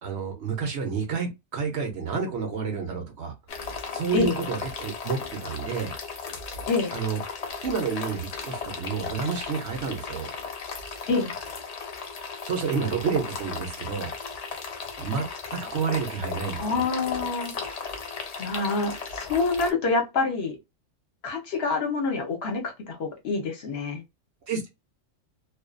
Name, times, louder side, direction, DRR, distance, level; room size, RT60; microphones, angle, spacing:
voice 1, 0.0-3.3 3.9-5.9 6.9-7.2 7.6-10.3 12.4-14.1 15.0-15.2 15.5-16.8 24.5-24.7, right 6 dB, 65° right, 0.9 m, -29 dB
sound 1, 3.5-19.7, left 5 dB, 80° left, 0.3 m, -36 dB
voice 2, 16.6-17.5 18.4-20.6 21.2-24.0, left 4 dB, 55° left, 1.0 m, -26 dB
2.4 x 2.3 x 2.4 m
omnidirectional pair, 1.3 m